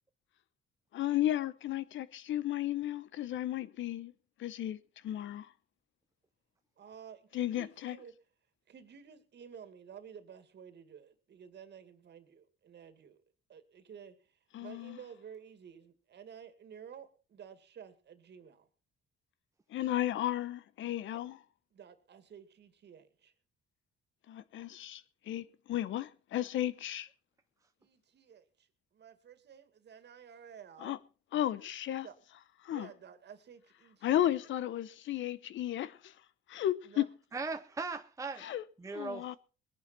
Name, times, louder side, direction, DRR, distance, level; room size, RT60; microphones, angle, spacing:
voice 1, 0.9-4.1 4.4-4.8 5.0-5.5 7.3-8.0 14.5-15.0 19.7-21.4 24.3-27.1 30.8-31.0 31.3-32.1 32.6-32.9 34.0-36.1 36.5-37.0 38.4-38.6 38.9-39.4, left 12 dB, 75° left, 0.9 m, -34 dB
voice 2, 6.8-8.2 8.7-13.2 13.5-18.7 21.1-21.2 21.7-23.3 27.8-30.9 32.0-32.2 32.7-34.3 36.8-37.1, right 7 dB, 60° right, 2.2 m, -52 dB
voice 3, 37.3-38.5 38.8-39.4, right 4 dB, 15° right, 0.8 m, -38 dB
21.0 x 10.5 x 4.4 m
cardioid pair, 90°, 20 cm